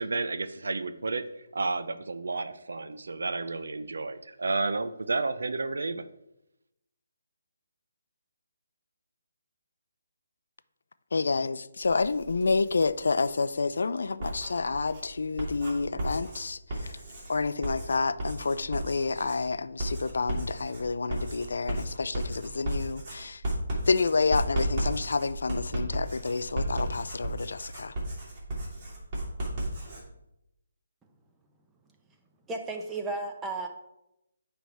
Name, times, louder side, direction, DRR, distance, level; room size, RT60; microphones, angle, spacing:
voice 1, 0.0-6.0, right 3 dB, 75° right, 0.5 m, -31 dB
voice 2, 11.1-17.0 17.3-23.4 23.9-27.9, left 4 dB, 70° left, 0.4 m, -29 dB
Writing, 11.8-13.4 14.0-30.0, right 1 dB, 35° right, 2.9 m, -34 dB
voice 3, 32.5-33.7, right 3 dB, 10° right, 0.8 m, -33 dB
9.2 x 3.4 x 4.6 m
hypercardioid pair, 155°, 0 cm